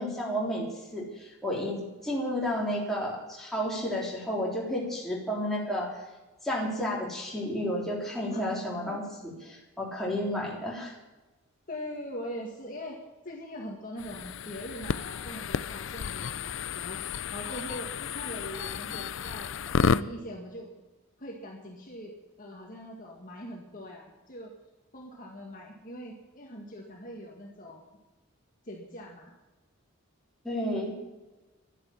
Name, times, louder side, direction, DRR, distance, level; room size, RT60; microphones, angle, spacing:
voice 1, 0.0-6.0 6.4-10.9 30.4-30.9, equal, ahead, -5 dB, 3.6 m, -32 dB
voice 2, 11.7-13.0 13.2-17.0 17.3-20.7 21.2-24.5 24.9-27.8 28.6-29.3, equal, 40° left, -1 dB, 2.0 m, -42 dB
sound 1, 14.0-20.0, left 6 dB, 60° left, 0.4 m, -32 dB
12.0 x 10.0 x 8.7 m, 1.1 s
head